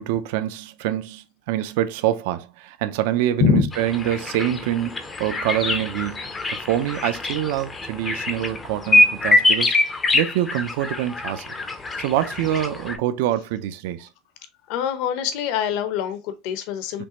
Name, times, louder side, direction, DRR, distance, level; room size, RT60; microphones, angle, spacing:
voice 1, 0.0-9.7 10.1-11.4 12.0-14.1 17.0-17.1, right 12 dB, 60° right, 0.5 m, -25 dB
sound 1, 3.7-13.0, left 2 dB, 10° left, 0.5 m, -24 dB
voice 2, 14.7-17.0, left 7 dB, 50° left, 0.8 m, -23 dB
5.2 x 3.2 x 2.9 m
supercardioid pair, 170°, 0 cm